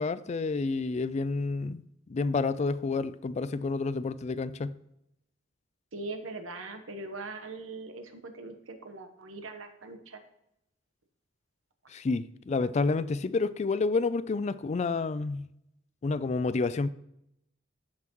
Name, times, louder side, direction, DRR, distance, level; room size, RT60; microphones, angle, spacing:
voice 1, 0.0-1.8 2.1-4.8 11.9-15.5 16.0-16.9, left 3 dB, 35° left, 0.3 m, -29 dB
voice 2, 5.9-10.2, right 3 dB, 85° right, 1.1 m, -41 dB
13.5 x 5.7 x 3.0 m
head